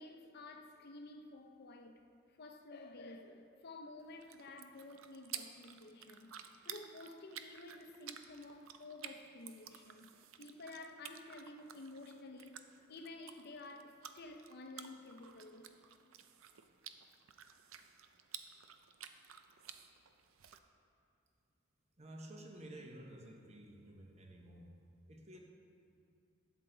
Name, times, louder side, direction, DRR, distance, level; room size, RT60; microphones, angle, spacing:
voice 1, 0.0-2.0 2.4-6.4 6.6-10.1 10.4-15.8 17.8-17.9, left 2 dB, 55° left, 0.7 m, -52 dB
sound 1, 4.0-20.6, right 9 dB, 80° right, 0.5 m, -53 dB
voice 2, 22.0-24.8 25.1-25.4, right 1 dB, 35° right, 1.0 m, -52 dB
12.0 x 8.0 x 3.9 m
head